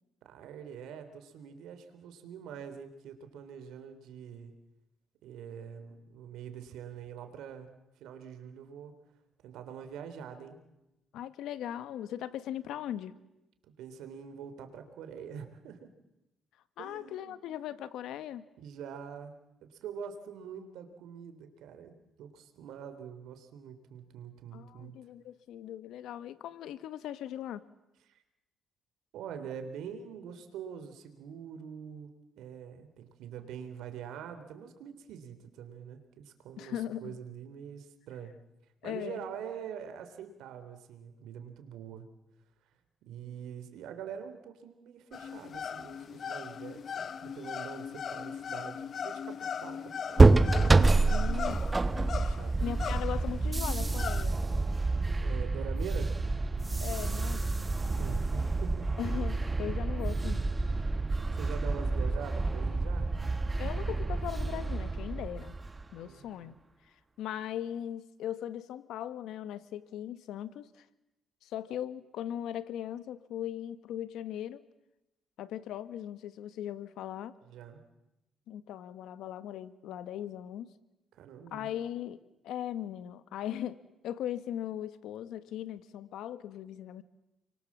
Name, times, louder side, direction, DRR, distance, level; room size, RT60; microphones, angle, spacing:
voice 1, 0.2-4.5 5.2-7.7 8.0-8.9 9.4-10.6 13.7-15.9 16.8-17.4 18.6-19.4 19.6-24.9 28.1-28.2 29.1-36.8 37.0-38.3 38.8-42.1 43.0-51.1 52.1-52.5 55.2-56.2 58.0-58.9 61.3-63.1 66.0-66.6 77.5-77.8 81.1-81.7, right 7 dB, 85° right, 9 dB, 3.5 m, -44 dB
voice 2, 11.1-13.1 16.8-18.4 24.5-27.6 36.6-37.2 38.8-39.2 51.1-51.6 52.6-54.4 56.8-58.2 59.0-60.4 63.6-65.5 65.9-66.6 67.2-70.8 71.4-74.6 75.4-77.3 78.5-80.7 81.5-83.8 84.0-87.0, left 11 dB, 85° left, 13 dB, 1.5 m, -39 dB
sound 1, 45.1-54.3, left 7 dB, 50° left, 0.9 m, -39 dB
sound 2, 50.2-65.9, right 3 dB, 25° right, 1.3 m, -27 dB
29.5 x 24.0 x 7.5 m, 0.94 s
cardioid pair, 90°, 0 cm